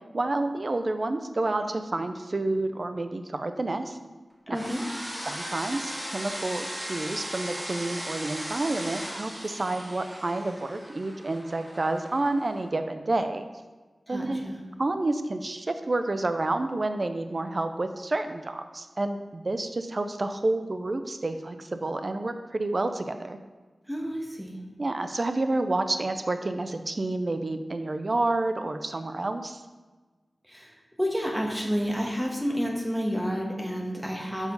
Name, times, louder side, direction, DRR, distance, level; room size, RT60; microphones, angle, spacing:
voice 1, 0.1-4.0 4.5-4.6 5.3-13.5 14.1-14.4 14.8-23.4 24.8-29.6, right 2 dB, 50° right, 8 dB, 0.5 m, -29 dB
voice 2, 4.5-4.8 14.1-14.6 23.9-24.6 30.5-34.5, equal, ahead, 0 dB, 1.4 m, -30 dB
sound 1, 4.5-12.7, equal, 20° right, 1.4 m, -37 dB
6.7 x 4.9 x 4.0 m, 1.3 s
cardioid pair, 45°, 0 cm